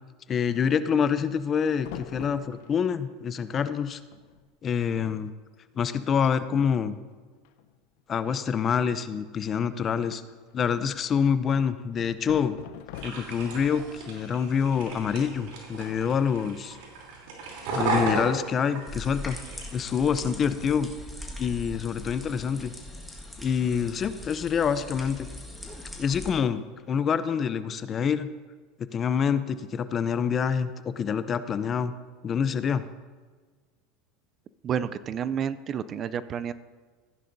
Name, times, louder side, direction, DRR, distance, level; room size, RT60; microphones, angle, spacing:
voice 1, 0.3-4.0 4.6-5.3 5.8-7.0 8.1-10.2 10.5-12.6 13.0-16.8 17.7-19.4 19.7-20.9 21.4-22.7 23.4-25.3 26.0-26.6 26.9-28.3 28.9-31.9 32.2-32.8, left 7 dB, 35° left, 13 dB, 0.6 m, -26 dB
sound 1, 1.8-3.0 3.8-3.9 4.1-4.5 4.8-5.0 5.5-5.6 6.0-6.4 7.4-8.0 10.0-11.0 11.9-13.6, left 11 dB, 70° left, 0.7 m, -43 dB
sound 2, 12.9-19.6, right 3 dB, 70° right, 3.3 m, -34 dB
sound 3, 18.9-26.3, left 1 dB, 5° left, 1.7 m, -41 dB
voice 2, 34.6-36.5, right 8 dB, 40° right, 15 dB, 0.4 m, -30 dB
15.0 x 10.0 x 2.7 m, 1.4 s
hypercardioid pair, 100°, 0 cm